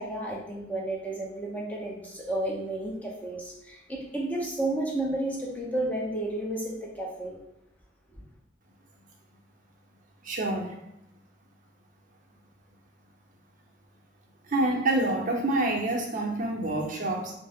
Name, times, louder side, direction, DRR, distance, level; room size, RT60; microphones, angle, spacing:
voice 1, 0.0-7.4, right 1 dB, 10° left, -3 dB, 0.5 m, -32 dB
voice 2, 10.2-10.7 14.5-17.3, right 2 dB, 45° right, 0 dB, 0.5 m, -27 dB
2.6 x 2.0 x 3.4 m, 0.87 s
head